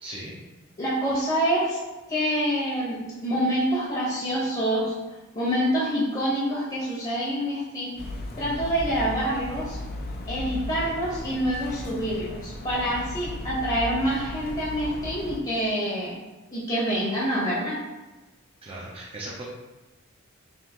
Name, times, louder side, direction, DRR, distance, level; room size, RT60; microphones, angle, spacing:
voice 1, 0.0-0.3 18.6-19.4, right 1 dB, 25° right, -5 dB, 0.5 m, -37 dB
voice 2, 0.8-1.8 2.1-4.9 5.3-8.0 8.4-9.8 10.3-16.1 16.5-17.8, equal, 30° left, -6 dB, 0.9 m, -26 dB
sound 1, 8.0-15.4, left 1 dB, 50° left, 0.5 m, -36 dB
5.3 x 2.8 x 2.9 m, 1.2 s
head